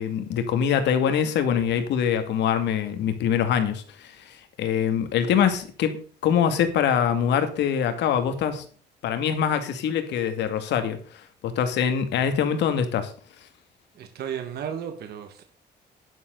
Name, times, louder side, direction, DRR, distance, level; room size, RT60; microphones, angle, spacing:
voice 1, 0.0-8.6 9.0-13.1, left 8 dB, 90° left, 2.3 m, -24 dB
voice 2, 14.0-15.4, right 8 dB, 65° right, 1.7 m, -34 dB
11.5 x 11.0 x 4.0 m
cardioid pair, 175°, 18 cm